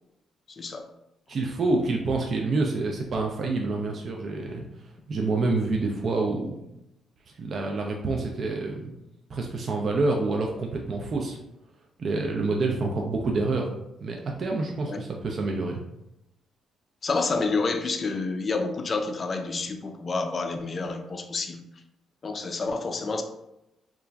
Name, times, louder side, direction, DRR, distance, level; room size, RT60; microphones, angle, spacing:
voice 1, 0.5-0.9 14.9-15.0 17.0-21.6 22.2-23.2, left 3 dB, 40° left, 6 dB, 0.3 m, -29 dB
voice 2, 1.3-6.7 7.4-8.9 9.3-11.4 12.0-13.7 14.0-15.8, right 3 dB, 50° right, 1 dB, 0.3 m, -27 dB
2.9 x 2.4 x 2.2 m, 0.86 s
cardioid pair, 90°, 0 cm